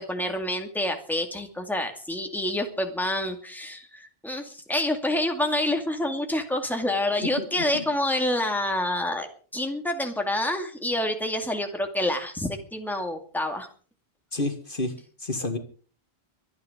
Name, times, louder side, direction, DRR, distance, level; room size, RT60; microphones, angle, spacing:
voice 1, 0.0-9.3 9.5-13.7, left 1 dB, ahead, 4 dB, 2.3 m, -27 dB
voice 2, 7.4-7.9 14.3-15.6, left 2 dB, 55° left, 7 dB, 2.0 m, -30 dB
24.5 x 9.8 x 5.1 m, 0.42 s
omnidirectional pair, 1.1 m